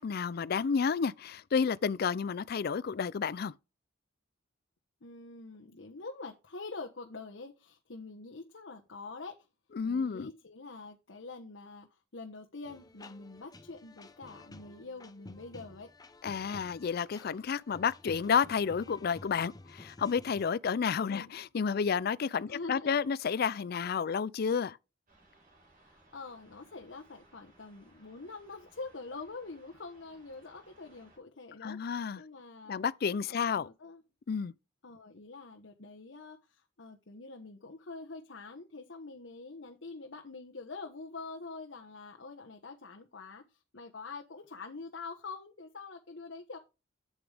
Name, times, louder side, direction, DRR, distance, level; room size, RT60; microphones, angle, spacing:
voice 1, 0.0-3.5 9.8-10.3 16.2-24.8 31.6-32.2 32.7-33.7 34.3-34.5, left 6 dB, 50° left, 0.4 m, -31 dB
voice 2, 5.0-9.5 9.8-15.9 21.1-21.3 22.5-22.9 25.8-32.8 33.3-34.0 34.8-46.6, left 3 dB, 70° left, 1.1 m, -45 dB
sound 1, 12.7-20.5, left 2 dB, 20° left, 0.8 m, -52 dB
sound 2, 25.1-31.2, right 2 dB, 45° right, 5.5 m, -63 dB
8.4 x 8.1 x 3.4 m
head